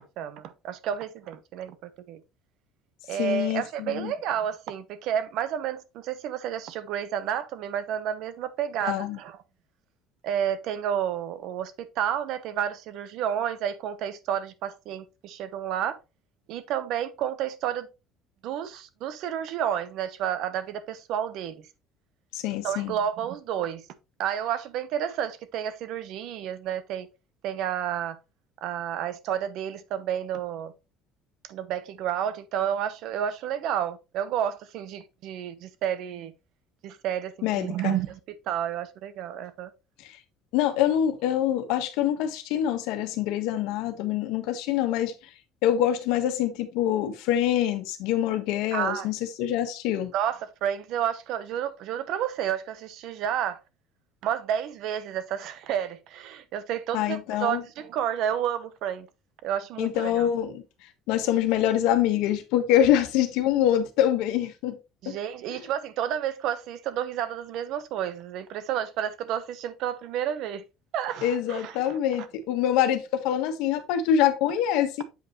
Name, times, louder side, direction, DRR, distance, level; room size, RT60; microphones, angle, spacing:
voice 1, 0.2-2.2 3.1-9.4 10.2-16.0 16.5-17.9 18.4-21.7 22.6-23.8 24.2-27.1 27.4-28.2 28.6-30.7 31.5-36.3 36.8-39.7 48.7-49.1 50.1-53.6 54.2-59.1 59.4-60.3 65.0-70.6 70.9-72.3, right 9 dB, 60° right, 0.9 m, -30 dB
voice 2, 3.2-4.1 8.8-9.2 22.3-22.9 37.4-38.0 40.0-40.2 40.5-45.1 45.6-50.1 56.9-57.6 59.8-60.6 61.1-64.8 65.0-65.2 71.2-75.0, left 11 dB, 80° left, 1.2 m, -25 dB
7.9 x 5.3 x 3.0 m
cardioid pair, 160°, 0 cm